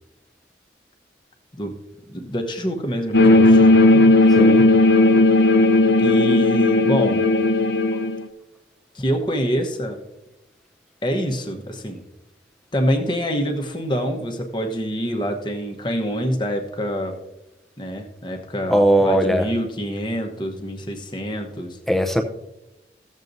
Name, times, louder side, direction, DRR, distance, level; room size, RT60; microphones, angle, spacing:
voice 1, 2.1-4.1 6.0-7.2 8.9-10.0 11.0-12.0 12.7-17.2 17.8-21.8, equal, 25° left, 4 dB, 1.0 m, -26 dB
sound 1, 3.1-8.2, left 2 dB, 65° left, 0.7 m, -15 dB
voice 2, 4.4-4.7 18.7-19.4 21.9-22.2, right 1 dB, ahead, 5 dB, 0.6 m, -18 dB
15.5 x 7.4 x 2.6 m, 0.93 s
head